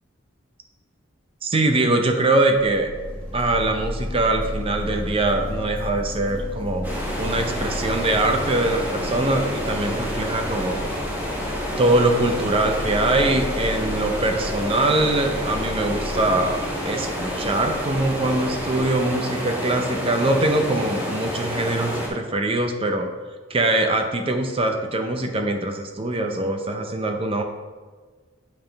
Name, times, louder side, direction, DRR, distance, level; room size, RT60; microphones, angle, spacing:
voice 1, 1.4-2.9 3.3-10.8 11.8-23.1 23.5-27.4, right 2 dB, 30° right, 4 dB, 0.6 m, -23 dB
sound 1, 2.5-19.1, left 1 dB, 5° left, 1.0 m, -33 dB
sound 2, 6.8-22.1, equal, 10° right, 1.3 m, -29 dB
8.9 x 3.6 x 3.4 m, 1.4 s
head